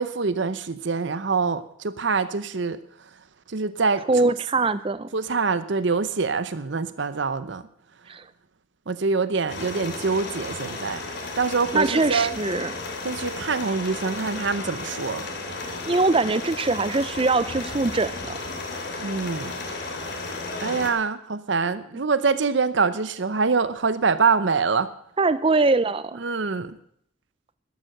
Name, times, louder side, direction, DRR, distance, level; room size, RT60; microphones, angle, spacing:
voice 1, 0.0-2.8 3.5-4.3 5.1-7.6 8.9-11.0 11.4-12.3 13.0-15.3 19.0-19.5 20.6-24.9 26.2-26.8, right 4 dB, 65° right, 14 dB, 0.7 m, -25 dB
voice 2, 4.1-5.1 8.1-8.2 11.7-12.8 15.9-18.4 25.2-26.2, right 3 dB, 25° right, 15 dB, 0.5 m, -22 dB
sound 1, 9.5-20.9, left 3 dB, 60° left, 2.8 m, -34 dB
12.5 x 12.0 x 6.6 m, 0.67 s
head